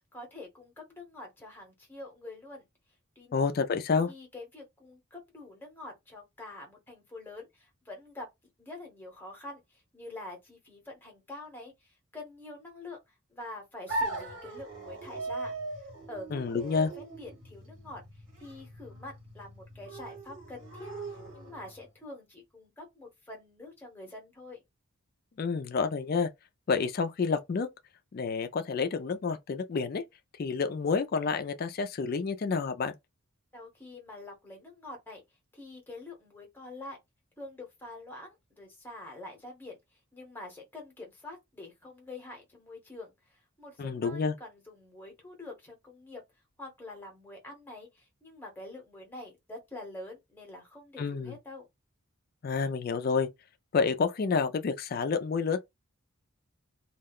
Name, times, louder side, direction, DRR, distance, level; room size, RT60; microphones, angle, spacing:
voice 1, 0.1-2.7 3.2-3.4 4.1-8.3 8.6-18.0 18.4-24.6 33.5-35.2 35.5-37.0 37.4-46.2 46.6-51.7, left 2 dB, 10° left, 0.9 m, -46 dB
voice 2, 3.3-4.1 16.3-16.9 25.4-26.3 26.7-27.7 28.1-30.0 30.4-32.9 43.8-44.4 51.0-51.3 52.4-53.3 53.7-55.6, left 5 dB, 40° left, 0.3 m, -29 dB
sound 1, 13.9-21.8, right 2 dB, 55° right, 1.4 m, -39 dB
2.3 x 2.2 x 3.4 m
head